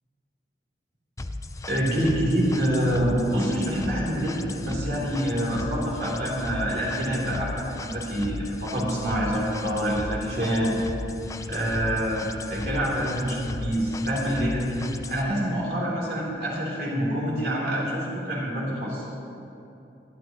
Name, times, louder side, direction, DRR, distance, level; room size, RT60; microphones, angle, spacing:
sound 1, 1.2-15.2, left 2 dB, 20° left, 0.4 m, -36 dB
voice 1, 1.7-10.8 11.5-14.8 15.1-19.0, equal, 60° right, -5 dB, 3.0 m, -26 dB
23.5 x 12.0 x 2.9 m, 2.8 s
head